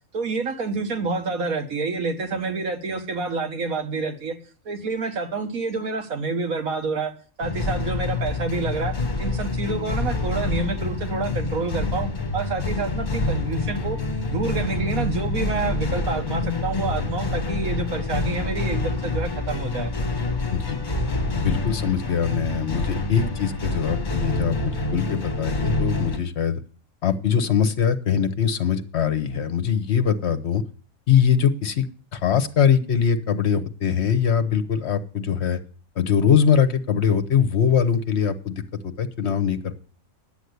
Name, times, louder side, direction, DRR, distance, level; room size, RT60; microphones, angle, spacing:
voice 1, 0.1-4.4 4.7-7.1 7.4-14.0 14.3-19.9, right 4 dB, 85° right, 5 dB, 1.9 m, -28 dB
sound 1, 7.4-26.2, left 3 dB, 35° left, 1.6 m, -27 dB
voice 2, 21.3-26.6 27.0-30.6 31.1-31.9 32.1-35.6 36.0-39.8, left 7 dB, 55° left, 11 dB, 1.1 m, -22 dB
10.5 x 8.2 x 7.9 m, 0.41 s
omnidirectional pair, 1.4 m